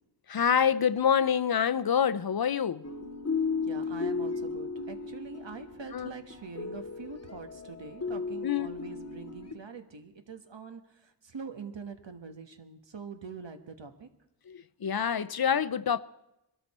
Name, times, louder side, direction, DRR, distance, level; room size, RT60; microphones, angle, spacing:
voice 1, 0.3-2.8 5.9-6.1 8.4-8.7 14.5-16.0, left 8 dB, 55° left, 0.6 m, -26 dB
sound 1, 2.8-9.5, left 4 dB, 35° left, 1.2 m, -35 dB
voice 2, 3.7-14.1, right 5 dB, 80° right, 1.4 m, -44 dB
21.5 x 12.5 x 4.3 m
wide cardioid pair, 50°, 43 cm